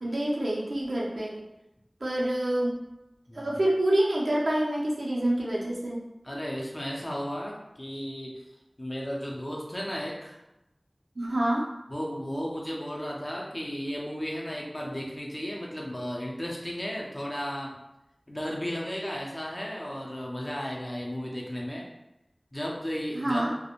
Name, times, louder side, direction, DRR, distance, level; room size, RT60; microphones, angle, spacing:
voice 1, 0.0-1.4 2.0-2.7 3.3-6.0 11.2-11.7 23.1-23.5, right 1 dB, 85° right, -4 dB, 0.5 m, -27 dB
voice 2, 6.2-8.4 8.8-10.4 11.9-17.8 18.3-21.9 22.5-23.4, equal, 30° left, -2 dB, 0.5 m, -34 dB
2.4 x 2.1 x 2.9 m, 0.91 s
wide cardioid pair, 50°, 0 cm